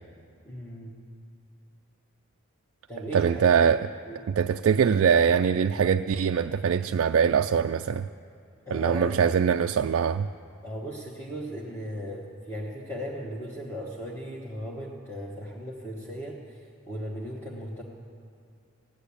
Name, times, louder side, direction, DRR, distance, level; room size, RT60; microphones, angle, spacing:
voice 1, 0.4-0.9 2.9-3.5 4.1-4.3 8.7-9.3 10.6-17.8, equal, 10° left, -4 dB, 1.2 m, -37 dB
voice 2, 3.1-3.9 4.3-8.1 8.7-10.3, right 7 dB, 60° right, 6 dB, 0.3 m, -23 dB
16.5 x 10.5 x 8.5 m, 2.4 s
head